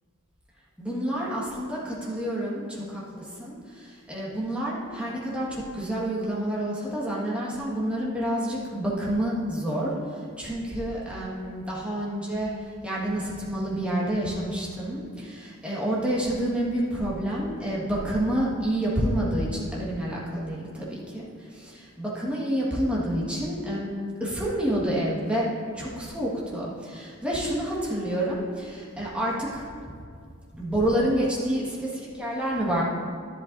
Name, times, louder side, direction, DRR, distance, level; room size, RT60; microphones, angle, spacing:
voice 1, 0.8-25.5 25.7-29.9 30.6-32.8, right 1 dB, 5° right, -7 dB, 1.6 m, -29 dB
11.5 x 11.0 x 2.7 m, 2.2 s
head